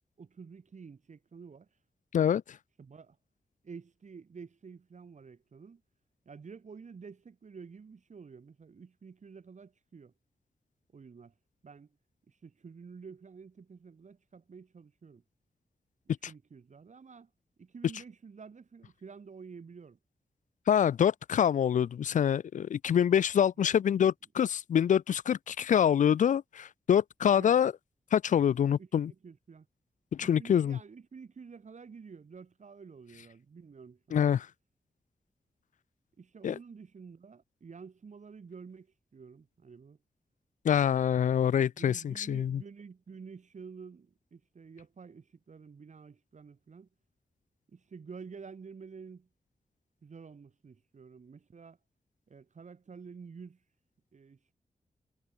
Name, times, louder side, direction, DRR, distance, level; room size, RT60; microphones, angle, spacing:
voice 1, 0.2-1.7 2.8-3.2 3.6-5.8 6.3-10.1 10.9-11.3 11.6-12.0 12.3-15.2 16.1-17.3 17.6-20.0 23.6-23.8 27.3-27.5 28.8-29.7 30.2-34.4 36.2-40.0 41.8-46.9 47.7-49.3 50.0-51.8 52.3-53.6 54.1-54.5, right 5 dB, 60° right, 2.4 m, -50 dB
voice 2, 20.7-27.7 28.1-29.1 30.1-30.8 34.1-34.5 36.4-36.6 40.6-42.6, left 9 dB, 65° left, 0.4 m, -26 dB
cardioid pair, 80°, 14 cm